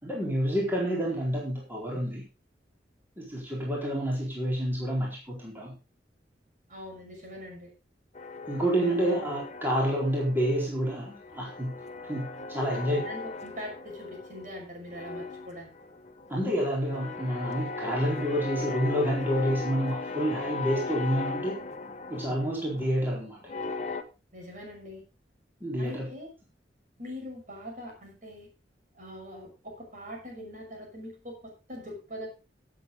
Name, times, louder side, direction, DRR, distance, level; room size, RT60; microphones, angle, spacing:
voice 1, 0.0-2.2 3.2-5.7 8.5-11.7 12.0-13.0 16.3-21.6 22.1-23.4 25.6-26.1, equal, 10° right, -3 dB, 4.2 m, -28 dB
voice 2, 6.7-7.7 8.8-9.2 12.7-15.7 24.3-25.0 25.8-26.3 27.0-28.5 28.9-32.3, equal, 45° right, 1 dB, 6.1 m, -42 dB
sound 1, 8.2-10.7 11.0-14.6 14.9-24.0, left 3 dB, 40° left, 1.2 m, -38 dB
17.0 x 7.9 x 4.0 m, 0.31 s
head